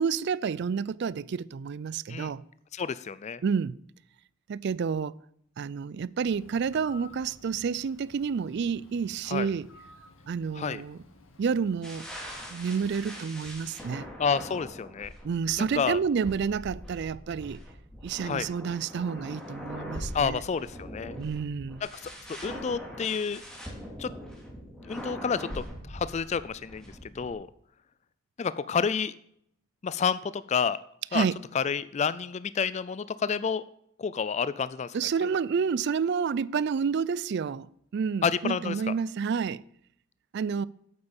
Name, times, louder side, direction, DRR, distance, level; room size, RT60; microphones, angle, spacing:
voice 1, 0.0-2.4 3.4-3.8 4.5-5.1 5.6-9.7 10.3-11.0 11.4-12.1 12.5-14.1 15.2-17.6 18.0-20.4 21.2-21.8 31.1-31.4 34.9-39.6 40.3-40.7, right 6 dB, 50° right, 0.3 m, -29 dB
voice 2, 2.7-3.4 9.3-9.5 10.6-10.8 14.2-15.1 15.6-16.0 18.2-18.5 20.1-21.2 22.3-23.4 24.0-24.1 24.8-26.9 27.1-27.5 28.4-29.1 29.8-30.8 31.1-31.3 31.5-33.6 34.0-34.9 38.2-38.8, left 6 dB, 30° left, 0.3 m, -29 dB
Bird, 6.2-12.0, left 2 dB, 65° left, 1.6 m, -54 dB
sound 1, 11.8-27.3, equal, 5° left, 2.3 m, -42 dB
8.7 x 8.0 x 7.2 m
head